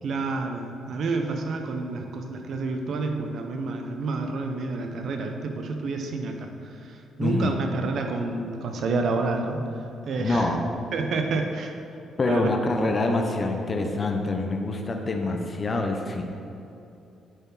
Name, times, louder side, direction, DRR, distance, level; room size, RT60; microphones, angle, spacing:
voice 1, 0.0-9.6 10.1-10.5 10.9-11.8 12.3-12.5, right 3 dB, 65° right, 4 dB, 0.8 m, -29 dB
voice 2, 7.2-7.6 10.2-10.7 12.2-16.2, left 2 dB, 35° left, 3 dB, 0.7 m, -25 dB
8.8 x 4.5 x 4.0 m, 2.8 s
cardioid pair, 90°, 0 cm